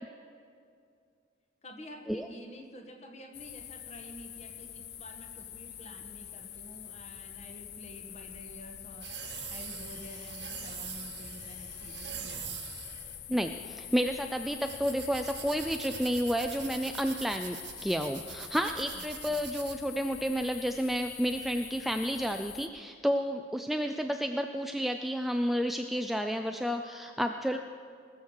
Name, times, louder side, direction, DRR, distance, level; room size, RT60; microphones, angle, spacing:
voice 1, 1.6-9.2 9.5-12.6 18.9-19.5, left 1 dB, 35° left, 3 dB, 1.5 m, -49 dB
sound 1, 3.3-22.7, left 10 dB, 60° left, 0.6 m, -46 dB
sound 2, 8.0-21.0, right 8 dB, 75° right, 1.0 m, -44 dB
voice 2, 13.3-27.6, equal, ahead, 5 dB, 0.3 m, -31 dB
20.0 x 7.2 x 6.5 m, 2.3 s
head